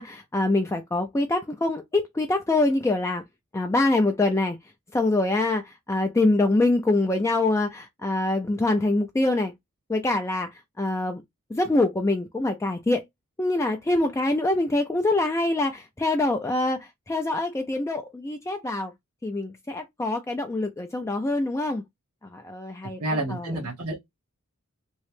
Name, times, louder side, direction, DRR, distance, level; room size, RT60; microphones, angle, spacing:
voice 1, 0.0-3.2 3.5-4.6 4.9-9.5 9.9-11.2 11.5-13.0 13.4-18.9 19.2-21.8 22.2-23.0 23.3-23.5, left 2 dB, 15° left, 0.3 m, -25 dB
voice 2, 23.0-24.0, right 2 dB, 85° right, 1.1 m, -29 dB
3.1 x 2.9 x 3.2 m
head